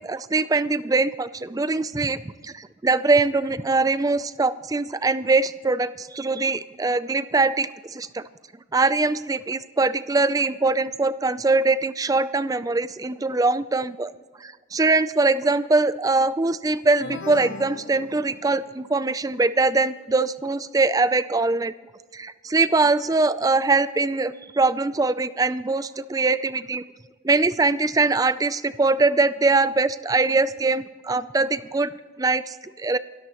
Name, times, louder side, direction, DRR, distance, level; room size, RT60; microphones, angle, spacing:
voice 1, 0.0-8.2 8.7-14.1 14.4-21.7 22.1-26.8 27.2-31.9 32.2-33.0, right 3 dB, 20° right, 15 dB, 0.4 m, -22 dB
sound 1, 17.0-18.8, left 3 dB, 85° left, 0.9 m, -38 dB
29.0 x 13.0 x 3.0 m, 1.5 s
head